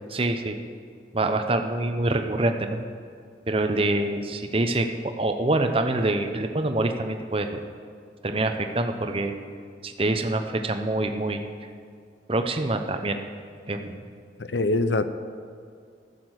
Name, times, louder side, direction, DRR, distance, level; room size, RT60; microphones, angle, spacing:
voice 1, 0.1-0.6 1.1-2.8 3.5-7.6 8.2-9.3 9.8-11.5 12.3-13.2 13.7-14.0, right 2 dB, 30° right, 6 dB, 0.8 m, -25 dB
voice 2, 14.4-15.1, left 2 dB, 80° left, 11 dB, 0.7 m, -23 dB
14.5 x 6.8 x 7.9 m, 2.2 s
head